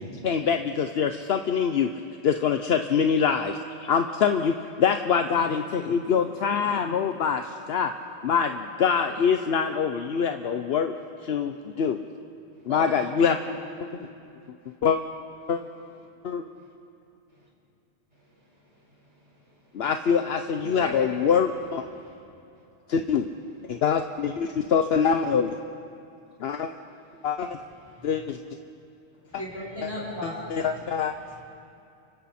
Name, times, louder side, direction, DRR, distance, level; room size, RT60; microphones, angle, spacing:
voice 1, 0.2-1.9 2.2-3.5 3.8-7.9 8.2-10.9 11.2-12.0 12.7-13.4 14.8-15.0 15.5-15.6 16.2-16.5 19.7-21.8 22.9-23.3 23.7-25.6 26.4-26.7 27.2-27.6 28.0-28.4 29.3-29.4 29.8-29.9 30.2-31.1, left 7 dB, 70° left, 7 dB, 1.0 m, -24 dB
voice 2, 12.6-12.9 13.4-13.6 14.6-14.7 16.6-16.7 17.3-17.5 18.1-19.9 23.7-23.8 26.7-26.9 27.1-27.3, equal, 85° right, -4 dB, 5.5 m, -45 dB
voice 3, 20.6-21.2 27.9-28.1 29.3-30.6, left 1 dB, 20° left, -6 dB, 5.5 m, -35 dB
30.0 x 24.5 x 4.3 m, 2.6 s
omnidirectional pair, 1.1 m